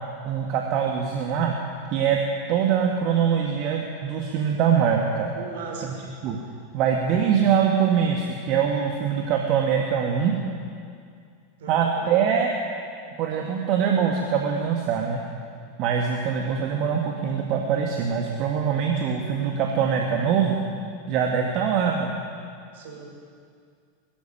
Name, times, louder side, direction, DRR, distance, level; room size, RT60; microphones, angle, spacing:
voice 1, 0.2-1.6 1.9-2.2 2.5-5.3 5.8-5.9 6.2-6.4 6.7-10.3 11.7-12.5 13.2-15.2 15.8-20.6 21.1-22.1, right 7 dB, 45° right, 1 dB, 2.2 m, -23 dB
voice 2, 5.4-6.0 11.6-12.0 22.7-23.2, right 4 dB, 60° right, 1 dB, 5.5 m, -38 dB
21.5 x 15.0 x 9.7 m, 2.2 s
figure-of-eight pair, 85°, 0 cm